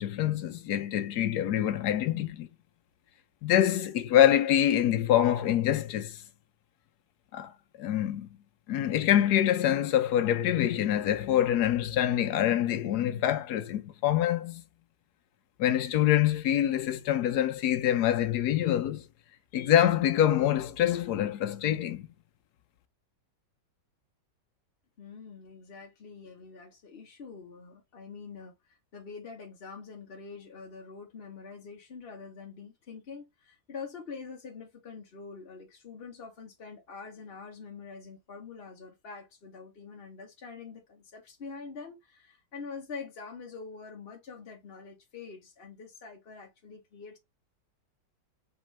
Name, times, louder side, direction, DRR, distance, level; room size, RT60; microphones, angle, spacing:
voice 1, 0.0-2.5 3.4-6.2 7.3-8.3 8.7-14.6 15.6-19.0 19.5-22.1, left 11 dB, 70° left, 1.1 m, -25 dB
voice 2, 25.0-47.2, left 5 dB, 40° left, 0.9 m, -45 dB
4.4 x 3.6 x 3.1 m
omnidirectional pair, 1.9 m